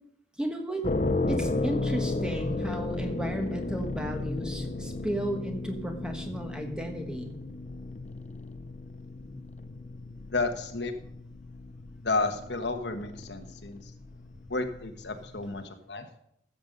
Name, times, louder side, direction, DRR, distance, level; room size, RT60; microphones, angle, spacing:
voice 1, 0.4-0.9 1.3-7.4, right 1 dB, 5° right, 4 dB, 1.3 m, -34 dB
sound 1, 0.8-15.6, left 2 dB, 40° left, 0.6 m, -34 dB
voice 2, 10.3-10.9 12.0-13.9 14.5-16.1, left 3 dB, 75° left, 6 dB, 1.3 m, -31 dB
14.5 x 7.2 x 5.3 m, 0.72 s
head